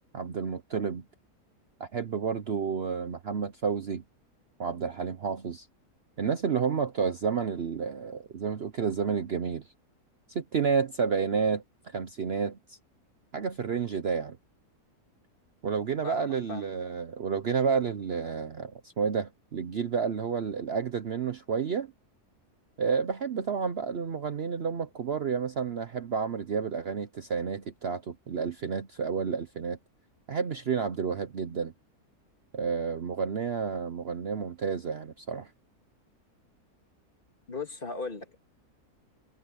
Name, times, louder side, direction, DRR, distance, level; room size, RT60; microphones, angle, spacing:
voice 1, 0.1-1.0 1.8-4.0 4.6-5.7 6.2-9.7 10.3-12.8 13.3-14.4 15.6-21.9 22.8-29.8 30.3-31.7 32.5-35.5, right 6 dB, 50° right, 0.9 m, -30 dB
voice 2, 16.0-16.7 37.5-38.4, left 4 dB, 35° left, 1.9 m, -37 dB
omnidirectional pair, 1.6 m